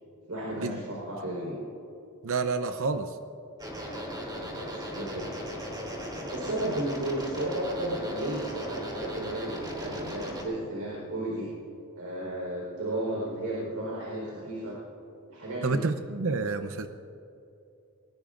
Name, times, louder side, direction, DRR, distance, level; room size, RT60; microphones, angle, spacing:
voice 1, 0.3-1.6 4.3-5.3 6.3-11.5 12.0-14.8 15.3-15.8, right 1 dB, 80° right, -4 dB, 4.3 m, -34 dB
voice 2, 2.2-3.1 15.6-16.9, right 4 dB, 65° right, 8 dB, 0.7 m, -29 dB
sound 1, 3.6-10.4, equal, 20° right, 3.4 m, -37 dB
23.0 x 19.5 x 2.5 m, 2.8 s
head